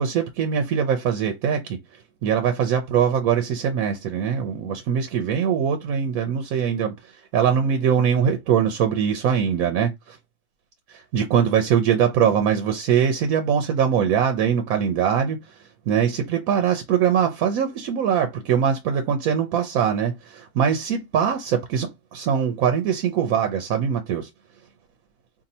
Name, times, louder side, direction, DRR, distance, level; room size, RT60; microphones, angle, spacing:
voice 1, 0.0-10.2 10.9-24.3, right 8 dB, 80° right, 1.0 m, -22 dB
2.7 x 2.6 x 4.1 m
omnidirectional pair, 1.5 m